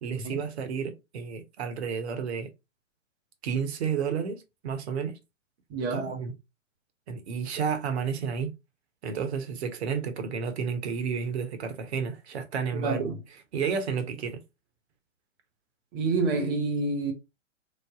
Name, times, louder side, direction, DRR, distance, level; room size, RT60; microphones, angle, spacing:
voice 1, 0.0-2.5 3.4-5.2 5.9-6.3 7.1-8.5 9.0-13.1 13.5-14.4, right 6 dB, 55° right, 1.0 m, -31 dB
voice 2, 5.7-6.2 12.7-13.2 15.9-17.1, right 3 dB, 20° right, 0.4 m, -28 dB
3.3 x 2.0 x 3.5 m
hypercardioid pair, 120°, 38 cm